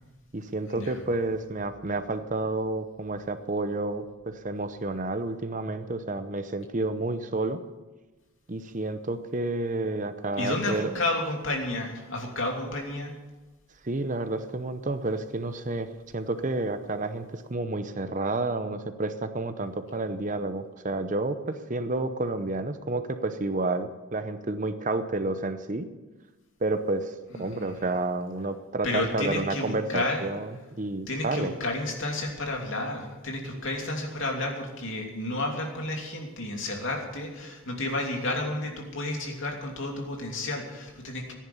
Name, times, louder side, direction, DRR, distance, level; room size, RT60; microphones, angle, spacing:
voice 1, 0.3-7.6 8.5-10.9 13.8-25.9 26.6-31.5, right 2 dB, 35° right, 10 dB, 0.7 m, -30 dB
voice 2, 10.4-13.1 27.3-27.7 28.8-30.3 31.1-41.3, left 2 dB, 65° left, 1 dB, 2.8 m, -31 dB
14.5 x 10.5 x 7.0 m, 1.2 s
head